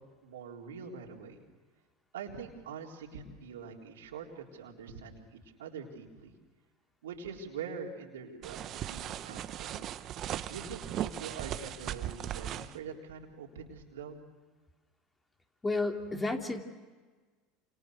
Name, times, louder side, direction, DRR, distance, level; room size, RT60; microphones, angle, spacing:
voice 1, 0.2-1.4 2.1-6.3 7.0-9.9 10.5-14.2, right 6 dB, 85° right, 0 dB, 3.9 m, -44 dB
sound 1, 8.4-12.8, right 11 dB, 45° right, 1.2 m, -38 dB
voice 2, 15.6-16.6, left 2 dB, 15° left, 3 dB, 3.2 m, -31 dB
28.5 x 27.5 x 6.5 m, 1.4 s
hypercardioid pair, 90°, 0 cm